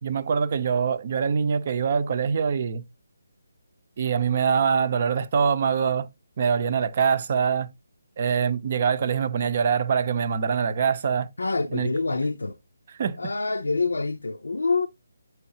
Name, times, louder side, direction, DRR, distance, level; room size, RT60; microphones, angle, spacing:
voice 1, 0.0-2.8 4.0-6.1 6.4-7.7 8.2-11.3 11.7-11.9 13.0-13.2, right 6 dB, 40° right, 0.7 m, -24 dB
voice 2, 11.4-12.6 13.2-14.9, left 3 dB, 70° left, 0.5 m, -26 dB
8.4 x 4.6 x 2.8 m
figure-of-eight pair, 145°, 0 cm